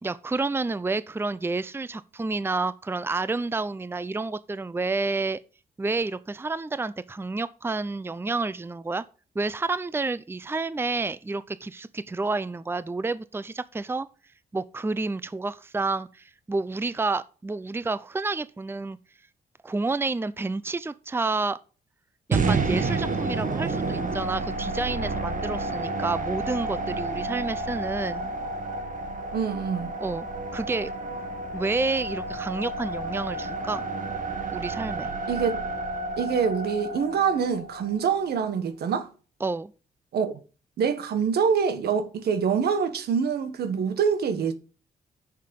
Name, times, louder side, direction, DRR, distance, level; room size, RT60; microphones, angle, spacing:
voice 1, 0.0-5.4 5.8-9.0 9.3-14.1 14.5-19.0 19.6-21.6 22.3-28.3 30.0-30.9 31.5-33.8 34.5-35.1 39.4-39.7, right 3 dB, 15° right, 0.5 m, -29 dB
sound 1, 22.3-38.5, right 3 dB, 55° right, 1.5 m, -30 dB
voice 2, 29.3-29.9 35.3-35.6 36.2-39.1 40.1-40.4 40.8-44.5, right 6 dB, 80° right, 1.4 m, -25 dB
6.7 x 6.6 x 5.2 m
cardioid pair, 65°, 16 cm